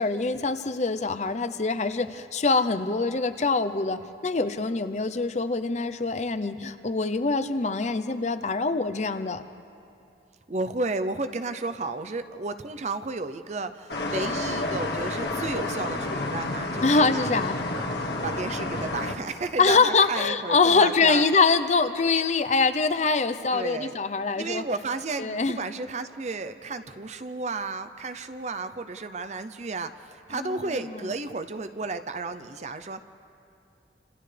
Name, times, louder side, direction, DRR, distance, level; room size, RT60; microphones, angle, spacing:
voice 1, 0.0-9.4 16.8-17.6 19.6-24.6 25.2-25.6 30.3-31.1, left 4 dB, 40° left, 11 dB, 0.7 m, -24 dB
voice 2, 10.5-17.3 18.2-21.2 23.5-23.9 24.3-33.0, right 3 dB, 40° right, 10 dB, 0.6 m, -32 dB
sound 1, 13.9-19.2, left 2 dB, 70° left, 1.8 m, -30 dB
29.0 x 27.0 x 3.4 m, 2.6 s
head